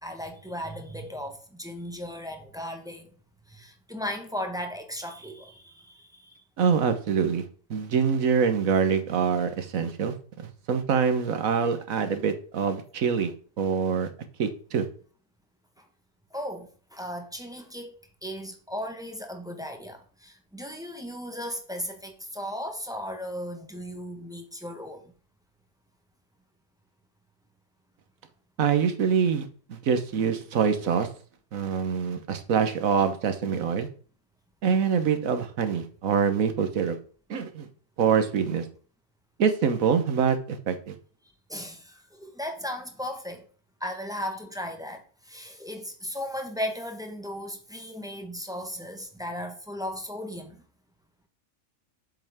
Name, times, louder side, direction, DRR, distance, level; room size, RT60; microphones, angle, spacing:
voice 1, 0.0-3.1 3.5-6.4 15.8-15.9 16.3-17.9 18.2-25.1 41.5-43.4 43.8-50.6, equal, 5° right, 1.2 m, -36 dB
voice 2, 6.6-7.4 7.7-13.3 13.6-14.1 14.4-14.9 28.6-31.1 31.5-33.9 34.6-37.0 37.3-37.7 38.0-38.7 39.4-41.0, right 6 dB, 85° right, 1.5 m, -25 dB
7.9 x 7.2 x 3.6 m
omnidirectional pair, 1.4 m